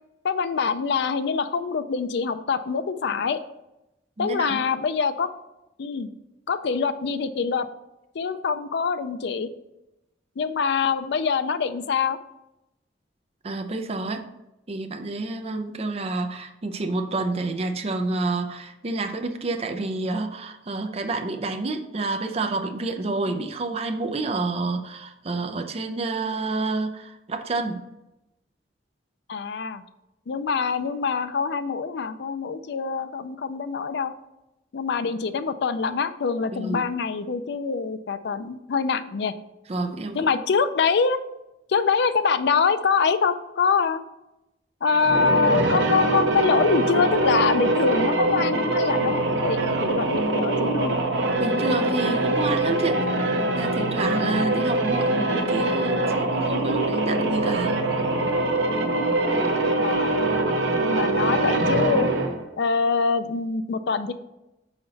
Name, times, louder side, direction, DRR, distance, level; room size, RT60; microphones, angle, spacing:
voice 1, 0.2-3.4 4.2-5.3 5.8-6.1 6.5-7.7 8.1-9.5 10.4-12.2 23.3-23.4 29.3-29.8 30.3-34.1 34.7-39.3 40.1-41.2 41.7-44.0 44.8-51.0 59.8-60.4 60.8-62.1 62.6-64.1, left 5 dB, 65° left, 11 dB, 0.4 m, -24 dB
voice 2, 4.2-4.6 13.4-14.3 14.7-27.8 36.5-36.9 39.7-40.3 51.4-53.0 53.6-57.8, right 3 dB, 35° right, 6 dB, 0.5 m, -29 dB
sound 1, 44.9-62.5, right 2 dB, 80° right, 0.8 m, -23 dB
5.7 x 4.3 x 4.0 m, 0.92 s
head